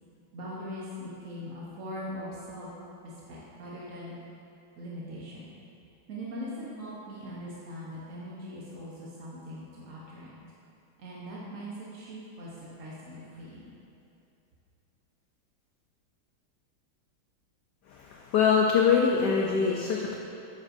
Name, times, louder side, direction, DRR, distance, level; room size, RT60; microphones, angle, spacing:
voice 1, 0.3-2.7 3.0-4.1 4.8-5.5 6.1-10.3 11.0-13.7, equal, 50° right, -6 dB, 1.0 m, -41 dB
voice 2, 17.9-20.2, left 6 dB, 80° left, -1 dB, 0.9 m, -24 dB
9.5 x 7.5 x 2.6 m, 2.8 s
omnidirectional pair, 2.4 m